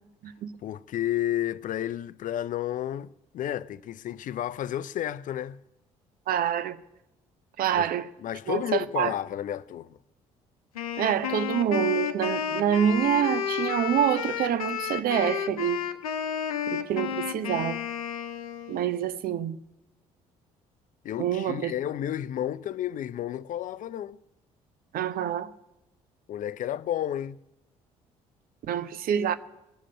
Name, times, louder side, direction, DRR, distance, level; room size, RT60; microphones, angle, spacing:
voice 1, 0.6-3.1 3.3-5.6 7.7-7.9 8.2-10.0 21.0-24.2 26.3-27.4, left 11 dB, 45° left, 0.5 m, -31 dB
voice 2, 6.3-6.8 7.6-8.1 8.5-9.1 11.0-15.8 16.7-17.8 18.7-19.6 21.2-21.7 24.9-25.5 28.7-29.3, right 9 dB, 55° right, 0.8 m, -26 dB
Wind instrument woodwind instrument, 10.7-18.9, left 8 dB, 80° left, 0.7 m, -31 dB
19.5 x 7.5 x 8.6 m
figure-of-eight pair, 50°, 18 cm